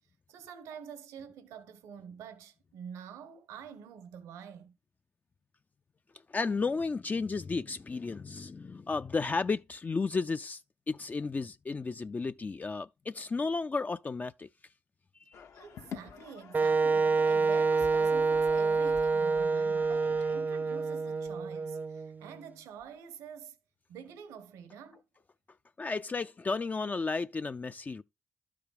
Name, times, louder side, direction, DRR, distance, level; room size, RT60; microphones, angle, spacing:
voice 1, 0.3-4.8 15.5-23.6 23.9-25.0, right 7 dB, 90° right, 1.2 m, -47 dB
voice 2, 6.3-10.6 10.9-14.5 15.3-15.4 25.8-28.0, left 4 dB, 35° left, 0.4 m, -33 dB
sound 1, 15.3-20.4, left 7 dB, 70° left, 1.1 m, -49 dB
Wind instrument woodwind instrument, 16.5-22.4, right 4 dB, 35° right, 0.4 m, -27 dB
12.0 x 5.0 x 5.0 m
supercardioid pair, 50°, 5 cm